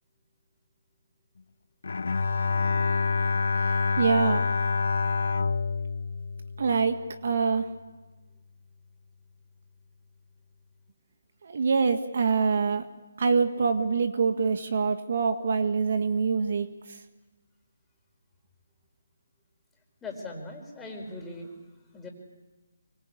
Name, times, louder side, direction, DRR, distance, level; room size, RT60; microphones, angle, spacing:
Bowed string instrument, 1.8-7.2, left 4 dB, 70° left, 0.8 m, -27 dB
voice 1, 4.0-4.4 6.6-7.7 11.4-12.9 13.2-17.0, right 5 dB, 55° right, 8 dB, 1.7 m, -25 dB
voice 2, 20.0-21.5 21.9-22.1, left 2 dB, 5° left, 0 dB, 4.5 m, -39 dB
25.0 x 23.5 x 8.6 m, 1.2 s
figure-of-eight pair, 155°, 0 cm